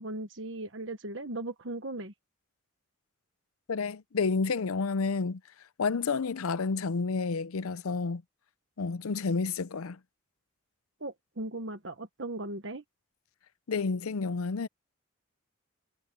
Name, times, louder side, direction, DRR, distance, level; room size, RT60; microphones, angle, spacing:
voice 1, 0.0-2.1 11.0-12.8, right 2 dB, 60° right, 1.3 m, -38 dB
voice 2, 3.7-5.4 5.8-8.2 8.8-10.0 13.7-14.7, left 4 dB, 85° left, 0.6 m, -30 dB
head